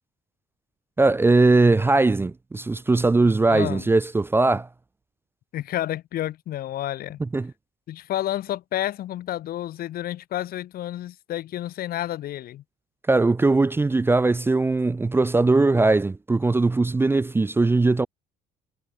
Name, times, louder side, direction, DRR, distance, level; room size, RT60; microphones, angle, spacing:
voice 1, 1.0-4.7 7.3-7.5 13.1-18.1, right 3 dB, 15° right, 0.5 m, -20 dB
voice 2, 3.5-3.9 5.5-7.2 7.9-12.6, left 13 dB, 60° left, 1.1 m, -30 dB
cardioid pair, 110°, 17 cm